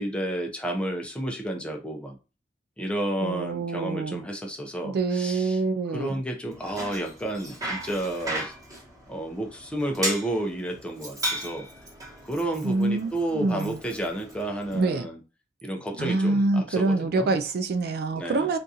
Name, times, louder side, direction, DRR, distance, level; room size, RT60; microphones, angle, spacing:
voice 1, 0.0-2.2 2.8-5.6 5.9-8.5 9.1-11.7 12.2-15.2 15.6-17.3 18.1-18.5, right 1 dB, 5° left, 0.6 m, -31 dB
voice 2, 3.2-4.2 4.8-6.2 12.6-13.8 14.7-15.1 16.0-18.6, right 3 dB, 60° right, 0.4 m, -26 dB
Bicycle, 6.5-14.8, right 1 dB, 20° right, 1.2 m, -36 dB
3.7 x 2.5 x 2.7 m
head